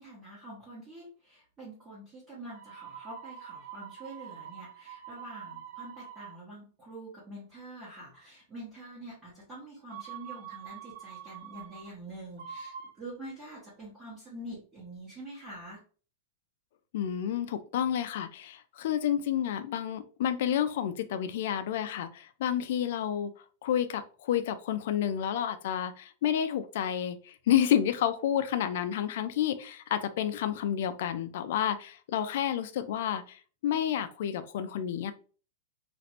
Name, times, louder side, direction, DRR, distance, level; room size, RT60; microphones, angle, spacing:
voice 1, 0.0-15.8, right 1 dB, 20° right, -8 dB, 1.0 m, -46 dB
sound 1, 2.5-6.4 9.9-11.9 12.4-13.0, right 9 dB, 75° right, 0.7 m, -45 dB
voice 2, 16.9-23.3 23.6-35.1, left 10 dB, 65° left, 10 dB, 0.3 m, -30 dB
3.1 x 2.5 x 2.8 m, 0.39 s
supercardioid pair, 165°, 0 cm